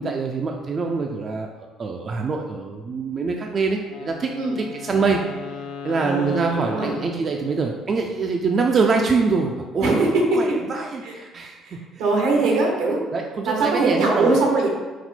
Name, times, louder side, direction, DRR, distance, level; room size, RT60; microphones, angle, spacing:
voice 1, 0.0-1.5 1.8-4.3 4.6-5.2 5.8-9.9 10.3-11.8 12.3-12.6 13.1-13.5 13.8-14.4, right 4 dB, 40° right, 2 dB, 0.3 m, -24 dB
Wind instrument woodwind instrument, 3.9-8.0, left 5 dB, 85° left, 0.3 m, -37 dB
voice 2, 6.0-7.0 9.8-10.6 11.0-11.2 11.6-13.0 13.4-14.7, right 3 dB, 85° right, 0 dB, 0.9 m, -21 dB
4.1 x 2.1 x 4.2 m, 1.3 s
cardioid pair, 90°, 0 cm